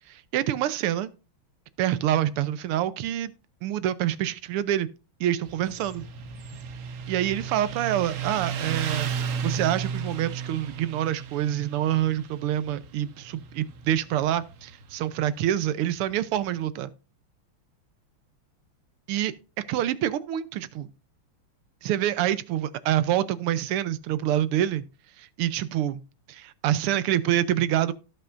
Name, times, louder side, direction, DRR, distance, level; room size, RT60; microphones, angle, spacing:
voice 1, 0.1-1.1 1.8-3.3 3.6-4.9 5.2-6.0 7.1-9.1 9.4-16.9 19.1-19.3 19.7-20.9 21.8-24.8 25.2-26.0 26.3-27.9, right 12 dB, 90° right, 1.7 m, -26 dB
Motorcycle, 5.5-16.6, right 6 dB, 60° right, 0.8 m, -35 dB
16.5 x 5.6 x 2.5 m
omnidirectional pair, 2.4 m